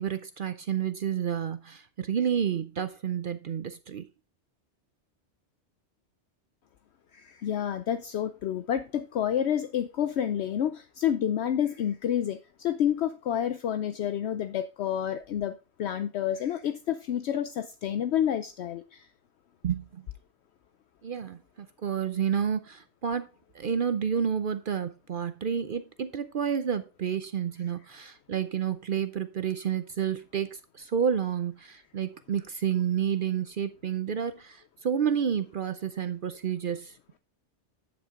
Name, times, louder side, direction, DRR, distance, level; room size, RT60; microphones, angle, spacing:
voice 1, 0.0-4.1 19.6-20.0 21.0-23.3 23.5-37.0, right 8 dB, 55° right, 0.7 m, -30 dB
voice 2, 7.1-19.1, left 10 dB, 70° left, 0.9 m, -29 dB
9.1 x 8.1 x 3.6 m
omnidirectional pair, 1.2 m